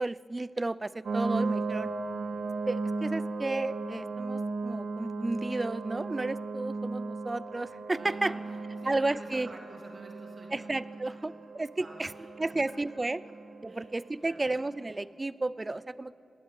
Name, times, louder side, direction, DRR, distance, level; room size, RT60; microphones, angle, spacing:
voice 1, 0.0-1.9 2.7-8.3 8.9-9.5 10.5-12.1 12.4-13.2 13.6-16.2, right 2 dB, 20° right, 18 dB, 0.4 m, -32 dB
sound 1, 1.1-14.7, right 3 dB, 65° right, 1.8 m, -36 dB
voice 2, 8.0-10.7 11.7-12.3 13.7-13.9 14.2-14.6, right 2 dB, 40° right, 0 dB, 3.0 m, -49 dB
20.0 x 17.5 x 9.2 m, 2.7 s
wide cardioid pair, 145°, 0 cm